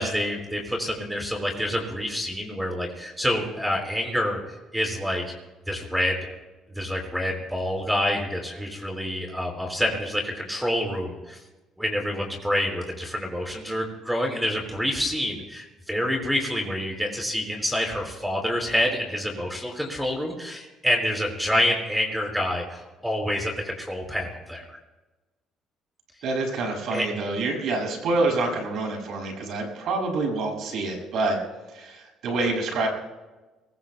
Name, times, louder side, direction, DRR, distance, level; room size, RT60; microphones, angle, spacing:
voice 1, 0.0-4.4 4.7-5.2 5.7-6.2 6.7-11.4 11.8-24.6 26.9-27.1, equal, 5° right, 1 dB, 4.5 m, -27 dB
voice 2, 26.2-31.4 31.7-32.9, right 3 dB, 70° right, 1 dB, 6.4 m, -27 dB
23.0 x 20.5 x 2.2 m, 1.1 s
supercardioid pair, 85°, 0 cm